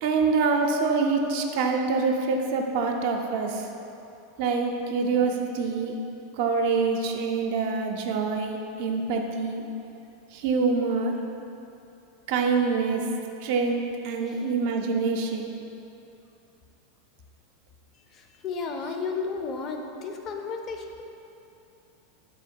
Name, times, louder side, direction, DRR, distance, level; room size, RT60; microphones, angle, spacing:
voice 1, 0.0-3.7 4.4-5.9 6.4-9.6 10.3-11.1 12.3-13.0 13.4-15.5, right 4 dB, 65° right, 3 dB, 0.4 m, -25 dB
voice 2, 18.1-21.0, left 4 dB, 40° left, 4 dB, 0.4 m, -33 dB
3.7 x 2.8 x 4.3 m, 2.8 s
hypercardioid pair, 100°, 0 cm